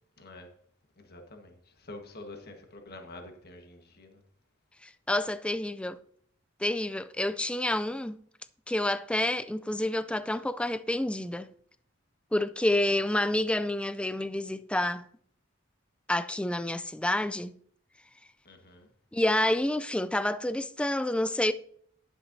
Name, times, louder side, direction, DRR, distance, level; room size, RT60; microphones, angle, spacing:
voice 1, 0.2-0.5 1.0-4.2 18.4-18.9, left 2 dB, 50° left, 1.4 m, -47 dB
voice 2, 4.8-6.0 6.6-8.2 8.7-11.5 12.3-15.1 16.1-17.5 19.1-21.5, left 1 dB, 5° left, 0.3 m, -28 dB
11.0 x 9.8 x 2.7 m
head